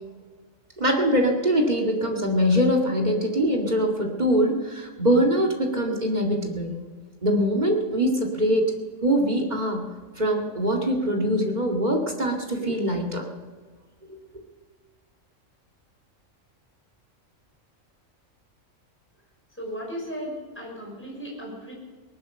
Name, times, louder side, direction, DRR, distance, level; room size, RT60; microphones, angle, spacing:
voice 1, 0.8-6.7 7.2-8.7 9.0-9.9 10.2-13.3 14.1-14.4, equal, 30° right, 1 dB, 2.2 m, -23 dB
voice 2, 19.6-21.7, equal, 10° left, -2 dB, 5.6 m, -35 dB
19.0 x 11.5 x 6.6 m, 1.5 s
omnidirectional pair, 1.4 m